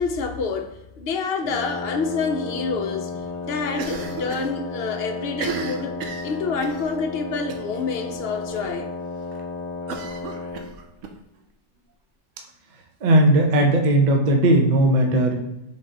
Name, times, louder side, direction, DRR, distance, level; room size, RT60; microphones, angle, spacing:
voice 1, 0.0-8.9, left 4 dB, 60° left, 0.7 m, -28 dB
Wind instrument woodwind instrument, 1.4-10.7, left 4 dB, 15° left, 1.0 m, -33 dB
Cough, 3.7-4.5 4.8-4.9 5.3-6.8 7.5-7.8 8.1-8.2 8.5-8.6 9.9-11.1, right 5 dB, 75° right, 1.0 m, -33 dB
voice 2, 13.0-15.4, right 1 dB, 45° right, 0.7 m, -17 dB
4.0 x 3.5 x 3.8 m
omnidirectional pair, 1.3 m